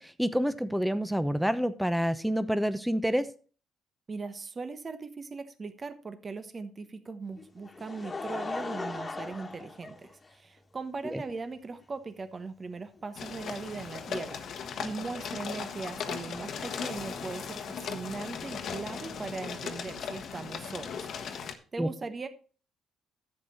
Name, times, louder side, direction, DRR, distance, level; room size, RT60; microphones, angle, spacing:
voice 1, 0.0-3.3 11.1-11.2 21.8-21.9, equal, 5° right, 12 dB, 0.8 m, -28 dB
voice 2, 4.1-22.3, right 4 dB, 35° right, 9 dB, 1.1 m, -39 dB
Laughter, 7.4-10.6 11.4-11.5 13.0-13.1, left 3 dB, 30° left, 1.6 m, -38 dB
sound 1, 13.1-21.5, left 6 dB, 60° left, 1.2 m, -38 dB
11.0 x 7.8 x 4.2 m, 0.39 s
hypercardioid pair, 55°, 0 cm